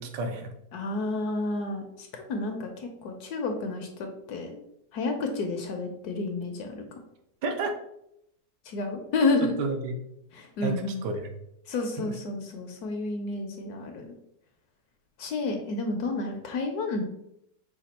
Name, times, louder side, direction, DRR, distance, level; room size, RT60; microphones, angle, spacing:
voice 1, 0.0-0.5 7.4-7.7 9.6-10.0 10.6-11.3 12.0-12.2, right 3 dB, 75° right, 5 dB, 1.2 m, -31 dB
voice 2, 0.7-4.5 4.9-7.0 8.7-9.5 10.3-11.0 11.7-14.1 15.2-17.0, left 3 dB, 70° left, 4 dB, 1.0 m, -30 dB
5.0 x 2.3 x 4.1 m, 0.77 s
omnidirectional pair, 2.0 m